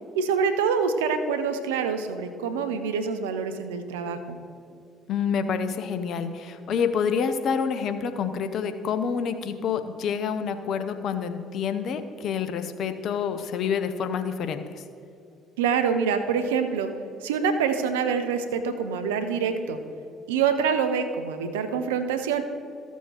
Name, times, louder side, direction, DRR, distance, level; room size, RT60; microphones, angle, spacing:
voice 1, 0.2-4.4 15.6-16.9 17.2-19.8 20.3-22.4, right 6 dB, 80° right, 8 dB, 0.6 m, -26 dB
voice 2, 5.1-14.8, left 6 dB, 60° left, 9 dB, 0.7 m, -28 dB
14.5 x 7.2 x 3.0 m, 2.6 s
hypercardioid pair, 55°, 0 cm